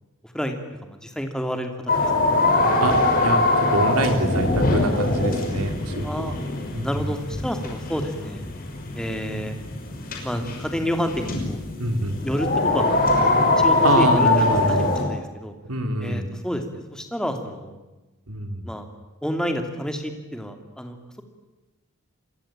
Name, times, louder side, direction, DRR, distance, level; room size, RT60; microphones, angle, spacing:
voice 1, 0.8-2.1 6.0-6.3 6.8-8.4 8.9-9.5 10.2-11.6 12.2-13.0 13.6-15.5 16.0-17.8 18.6-18.9 19.2-21.2, equal, 5° left, 5 dB, 2.7 m, -29 dB
sound 1, 1.9-15.0, left 2 dB, 40° left, 6.0 m, -22 dB
voice 2, 3.2-6.3 6.7-7.1 9.3-9.4 11.8-12.2 13.8-15.0 15.6-16.3 18.3-18.6, right 2 dB, 90° right, 6 dB, 3.6 m, -25 dB
27.5 x 22.0 x 8.9 m, 1.1 s
head